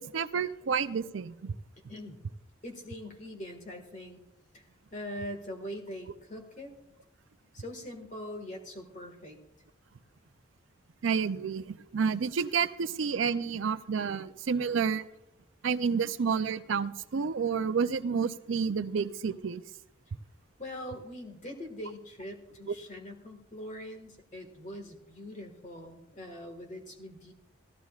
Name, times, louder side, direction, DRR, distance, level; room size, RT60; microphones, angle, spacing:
voice 1, 0.0-1.5 11.0-15.0 15.6-19.6 22.7-22.8, right 6 dB, 75° right, 13 dB, 0.5 m, -30 dB
voice 2, 1.9-2.2 2.6-4.2 4.5-4.6 4.9-6.7 7.5-9.4 20.6-27.3, left 1 dB, 40° left, 3 dB, 1.7 m, -42 dB
17.5 x 12.5 x 2.4 m, 0.87 s
head